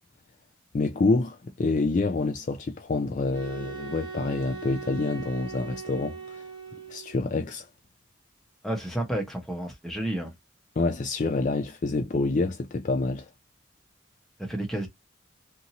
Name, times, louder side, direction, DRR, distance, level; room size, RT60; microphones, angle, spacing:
voice 1, 0.7-6.4 6.9-7.7 10.8-13.3, left 3 dB, 40° left, 0.3 m, -27 dB
sound 1, 3.3-7.2, right 5 dB, 25° right, 0.8 m, -40 dB
voice 2, 8.6-10.3 14.4-14.9, right 1 dB, ahead, 0.9 m, -31 dB
2.7 x 2.6 x 2.8 m
head